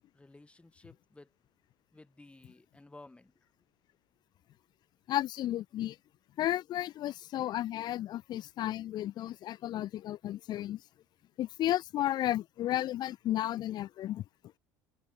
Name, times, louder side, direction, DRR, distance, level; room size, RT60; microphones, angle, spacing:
voice 1, 0.1-1.3 1.9-3.3, left 2 dB, 10° left, 5.2 m, -55 dB
voice 2, 5.1-6.0 6.4-10.8 11.4-14.2, left 13 dB, 50° left, 0.4 m, -33 dB
supercardioid pair, 80°, 9 cm